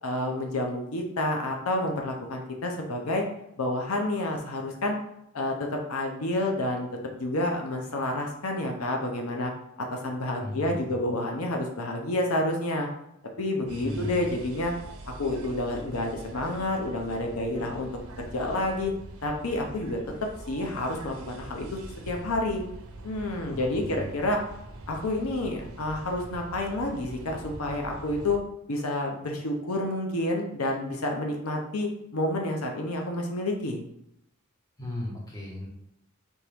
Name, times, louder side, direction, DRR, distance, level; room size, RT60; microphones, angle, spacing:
voice 1, 0.0-3.2 3.6-5.0 5.3-6.9 7.2-9.5 9.9-12.9 13.4-14.7 15.2-17.9 18.2-18.9 19.2-20.0 20.5-21.8 22.1-22.6 23.0-24.4 24.9-28.4 28.7-33.8, left 1 dB, 90° left, 2 dB, 0.8 m, -29 dB
voice 2, 10.4-11.0 13.8-14.3 23.4-24.0 34.8-35.7, left 1 dB, 15° left, -5 dB, 1.4 m, -36 dB
sound 1, 13.7-28.4, right 2 dB, 85° right, 0.7 m, -43 dB
4.4 x 3.5 x 3.5 m, 0.78 s
head